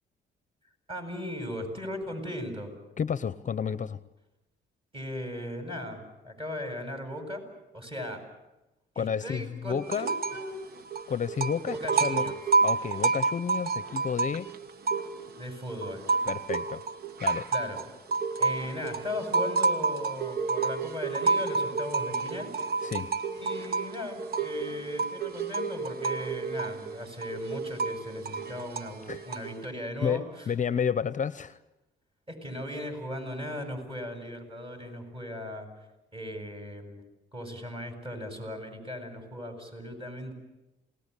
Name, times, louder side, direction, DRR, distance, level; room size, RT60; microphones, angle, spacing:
voice 1, 0.9-2.7 4.9-7.4 7.7-8.2 8.9-10.6 11.7-12.3 15.4-16.0 17.5-17.8 18.4-22.5 23.4-30.5 32.3-35.7 36.1-37.0 37.3-40.3, left 1 dB, 25° right, 5 dB, 7.9 m, -37 dB
voice 2, 3.0-4.0 9.0-10.1 11.1-12.3 12.6-14.5 16.3-16.8 17.2-17.5 22.8-23.1 29.1-29.2 30.0-31.6, left 7 dB, 40° left, 14 dB, 0.8 m, -31 dB
sound 1, 9.9-10.5 10.8-15.4 15.8-29.6, right 4 dB, 50° right, 1.3 m, -30 dB
28.0 x 19.0 x 8.4 m, 0.99 s
cardioid pair, 90°, 20 cm